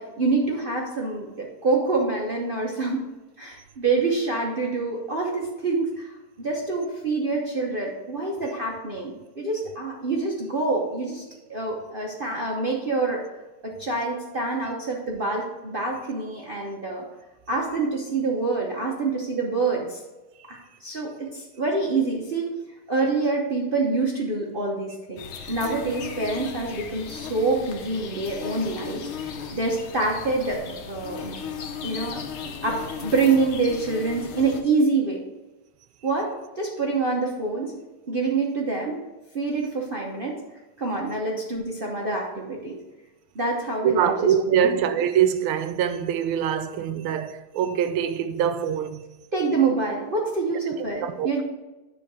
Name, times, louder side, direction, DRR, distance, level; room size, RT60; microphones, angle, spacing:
voice 1, 0.0-3.1 3.4-11.2 11.5-13.2 13.6-17.0 17.5-20.0 20.5-22.5 22.9-25.2 25.5-31.4 31.8-32.2 32.6-35.2 36.0-36.3 36.6-37.7 38.1-39.0 39.3-40.4 40.8-42.8 43.3-44.8 49.3-51.4, right 3 dB, 45° right, 0.7 m, -26 dB
sound 1, 25.2-34.6, left 6 dB, 75° left, 1.6 m, -36 dB
voice 2, 43.8-49.0 51.0-51.4, right 9 dB, 80° right, 1.5 m, -23 dB
9.9 x 3.8 x 4.7 m
omnidirectional pair, 2.4 m